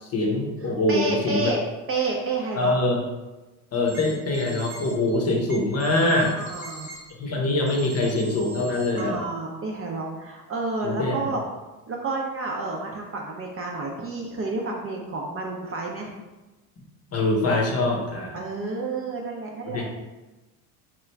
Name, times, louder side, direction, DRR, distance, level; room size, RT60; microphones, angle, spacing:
voice 1, 0.0-1.5 2.6-3.0 3.7-6.4 7.2-9.2 10.8-11.4 17.1-18.3 19.7-19.8, left 2 dB, 35° left, 0 dB, 0.8 m, -24 dB
voice 2, 0.6-2.7 6.4-6.9 9.0-11.4 11.9-16.1 18.3-19.9, right 3 dB, 30° right, 0 dB, 0.5 m, -30 dB
sound 1, 3.8-7.0 7.7-9.0, right 2 dB, 5° right, 1.0 m, -42 dB
3.0 x 2.3 x 3.3 m, 1.1 s
hypercardioid pair, 80°, 44 cm